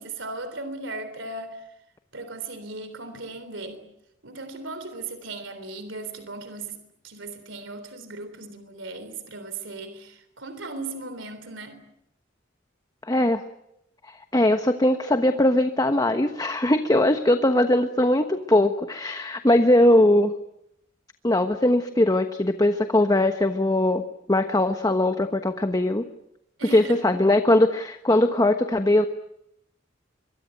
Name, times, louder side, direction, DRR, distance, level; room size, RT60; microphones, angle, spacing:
voice 1, 0.0-1.7 2.1-3.9 4.2-6.8 7.0-11.8 26.6-27.0, right 3 dB, 75° right, 3.6 m, -37 dB
voice 2, 13.1-13.4 14.1-20.3 21.2-26.0 26.7-29.0, left 1 dB, 20° left, 1.2 m, -20 dB
24.5 x 23.5 x 9.2 m
head